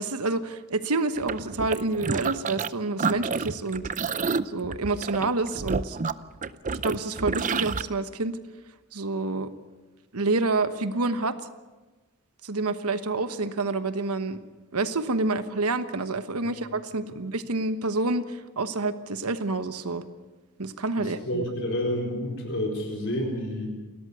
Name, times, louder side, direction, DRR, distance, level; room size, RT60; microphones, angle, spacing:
voice 1, 0.0-3.9 4.4-6.0 6.7-8.4 8.9-9.5 10.1-11.4 12.4-14.4 14.7-20.0 20.6-21.4, right 3 dB, 80° right, 11 dB, 1.2 m, -28 dB
sound 1, 1.2-2.7 3.0-7.8, right 4 dB, 35° right, 0.6 m, -29 dB
voice 2, 21.0-23.7, equal, 60° left, 1 dB, 4.5 m, -29 dB
29.0 x 13.5 x 8.1 m, 1.2 s
head